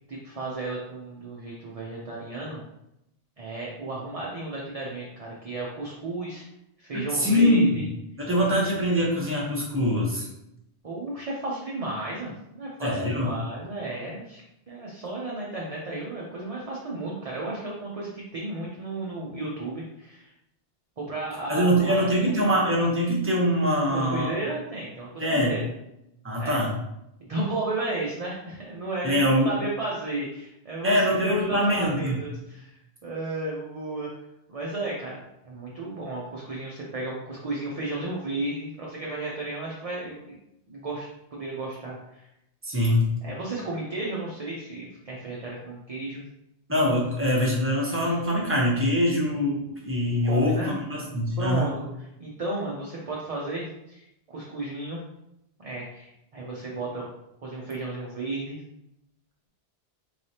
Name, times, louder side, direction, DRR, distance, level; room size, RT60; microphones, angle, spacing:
voice 1, 0.1-2.6 3.4-6.4 6.8-7.9 10.8-14.4 14.7-20.3 21.0-22.0 23.9-25.7 26.4-26.6 27.3-29.2 29.4-34.1 34.5-40.4 40.7-42.3 43.2-46.2 50.2-50.7 51.4-51.9 52.2-55.0 55.6-57.1 57.4-58.6, right 2 dB, 40° right, -4 dB, 0.6 m, -33 dB
voice 2, 7.1-7.8 8.2-10.3 12.8-13.3 21.5-24.3 25.2-25.5 26.2-26.7 29.0-29.5 30.8-32.2 42.6-43.1 46.7-51.7, equal, 15° right, -3 dB, 0.8 m, -23 dB
3.8 x 3.2 x 2.8 m, 0.83 s
omnidirectional pair, 1.1 m